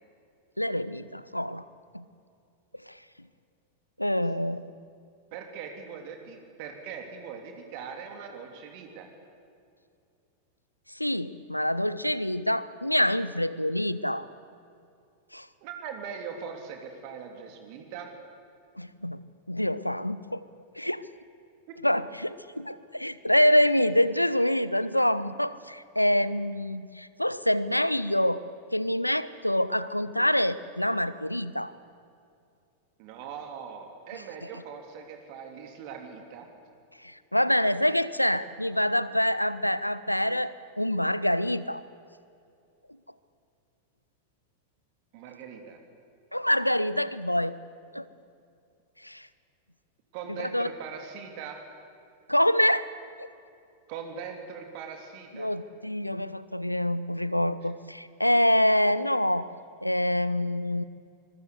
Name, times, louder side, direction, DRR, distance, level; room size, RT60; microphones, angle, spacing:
voice 1, 0.6-1.6 1.9-2.0 2.9-3.0 4.0-4.6 11.0-14.3 15.3-15.5 18.8-19.2 19.5-20.4 20.8-21.0 21.8-28.4 28.7-31.7 37.0-41.8 46.3-47.5 47.9-48.0 49.0-49.3 50.4-50.7 52.3-52.9 53.2-53.3 55.3-59.5 59.8-60.8, left 1 dB, 90° left, 16 dB, 0.9 m, -26 dB
voice 2, 5.3-9.1 15.6-18.1 21.7-21.8 33.0-36.5 45.1-45.8 50.1-51.6 53.9-55.5, right 6 dB, 45° right, 4 dB, 3.2 m, -41 dB
25.5 x 22.0 x 8.2 m, 2.5 s
figure-of-eight pair, 90°, 0 cm